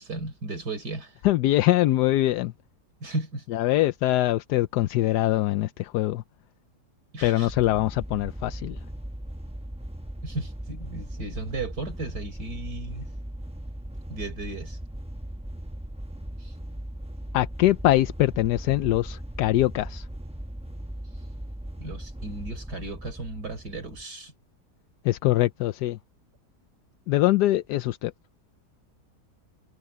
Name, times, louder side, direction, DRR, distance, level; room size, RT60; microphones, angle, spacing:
voice 1, 0.0-1.2 3.0-3.4 7.1-7.5 10.2-13.1 14.1-14.8 16.4-16.5 21.8-24.3, right 2 dB, 75° right, 4.6 m, -35 dB
voice 2, 1.2-2.5 3.5-6.2 7.2-8.8 17.3-20.0 25.0-26.0 27.1-28.1, left 15 dB, 80° left, 1.2 m, -23 dB
sound 1, 7.5-24.0, right 1 dB, 5° right, 0.6 m, -38 dB
omnidirectional pair, 1.8 m